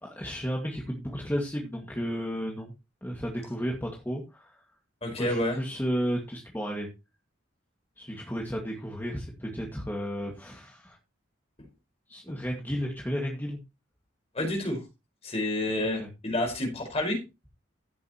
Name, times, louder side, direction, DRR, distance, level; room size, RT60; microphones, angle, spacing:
voice 1, 0.0-2.7 3.0-4.6 5.2-6.9 8.0-11.0 12.1-13.6 16.0-16.1, equal, 10° left, -1 dB, 2.0 m, -33 dB
voice 2, 5.0-5.6 14.3-14.8 15.2-17.2, left 1 dB, 30° left, 3 dB, 4.9 m, -29 dB
15.0 x 7.7 x 3.0 m, 0.26 s
head